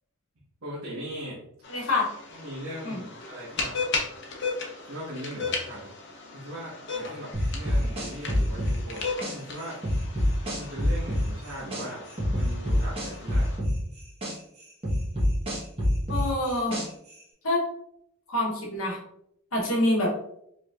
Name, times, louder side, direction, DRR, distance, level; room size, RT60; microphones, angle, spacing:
voice 1, 0.6-1.4 2.3-3.7 4.4-4.6 4.8-5.9 6.3-9.8 10.6-12.0 12.3-13.5, equal, 70° right, -7 dB, 1.2 m, -39 dB
sound 1, 1.6-13.6, left 4 dB, 50° left, 0.7 m, -36 dB
voice 2, 1.7-2.1 2.8-3.0 16.1-16.8 17.4-17.6 18.3-19.0 19.5-20.1, left 1 dB, 70° left, -3 dB, 1.1 m, -26 dB
sound 2, 7.3-9.3 9.8-11.8 12.2-14.3 14.8-17.1, left 1 dB, 25° right, 1.2 m, -25 dB
4.8 x 3.1 x 2.4 m, 0.75 s
head